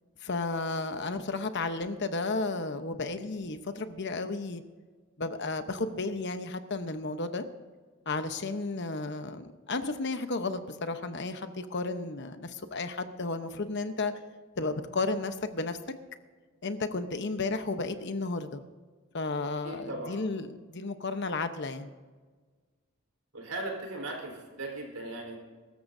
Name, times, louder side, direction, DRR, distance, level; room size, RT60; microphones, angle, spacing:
voice 1, 0.2-4.6 5.2-7.4 8.1-14.1 14.6-15.8 16.6-18.6 19.1-21.9, left 3 dB, 55° left, 9 dB, 1.0 m, -33 dB
voice 2, 19.6-20.2 23.3-25.4, right 2 dB, 80° right, 0 dB, 4.3 m, -38 dB
23.5 x 13.5 x 2.7 m, 1.4 s
head